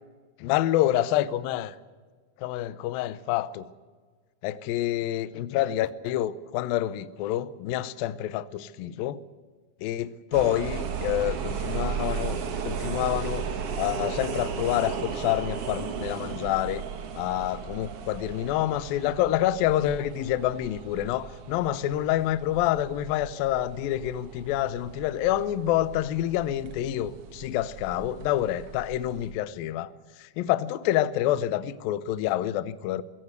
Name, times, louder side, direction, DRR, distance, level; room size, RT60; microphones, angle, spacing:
voice 1, 0.4-1.8 2.4-3.7 4.4-9.2 9.8-13.5 13.7-16.8 17.1-29.9 30.2-33.0, left 13 dB, 85° left, 2.0 m, -27 dB
sound 1, 10.3-29.3, right 6 dB, 70° right, 1.4 m, -35 dB
22.0 x 17.0 x 8.1 m
omnidirectional pair, 5.2 m